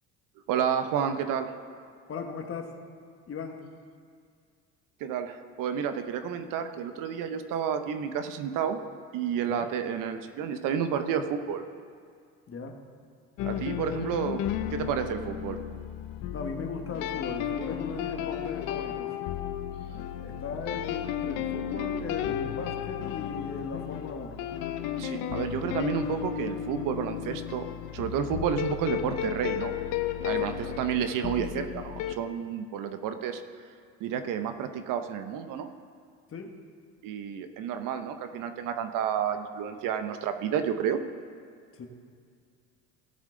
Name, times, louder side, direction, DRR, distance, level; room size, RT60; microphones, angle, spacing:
voice 1, 0.5-1.5 5.0-8.8 9.1-11.6 13.4-14.4 14.7-15.6 25.0-27.6 27.9-29.7 30.2-33.4 34.0-35.7 37.0-41.0, right 8 dB, 65° right, 8 dB, 0.9 m, -30 dB
voice 2, 2.1-2.8 3.3-3.6 9.4-9.7 12.5-12.8 16.3-19.1 20.2-24.4 30.4-30.8 36.3-36.6 41.7-41.9, left 4 dB, 40° left, 4 dB, 1.5 m, -38 dB
sound 1, 13.4-32.1, left 10 dB, 70° left, 0.7 m, -33 dB
17.0 x 7.3 x 3.9 m, 2.2 s
supercardioid pair, 85°, 34 cm